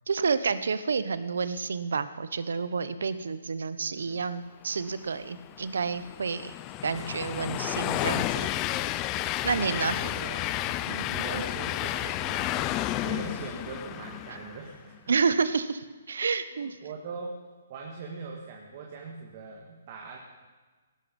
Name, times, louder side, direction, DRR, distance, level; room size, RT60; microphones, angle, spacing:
voice 1, 0.1-6.5 6.8-8.5 9.4-9.9 10.9-11.0 15.1-16.8, right 5 dB, 80° right, 13 dB, 0.9 m, -29 dB
Train, 5.3-14.7, left 14 dB, 20° left, 0.4 m, -31 dB
voice 2, 9.6-12.7 13.0-15.0 16.5-17.4 17.7-20.2, right 4 dB, 40° right, -1 dB, 1.9 m, -41 dB
17.0 x 12.0 x 5.4 m, 1.3 s
hypercardioid pair, 160°, 0 cm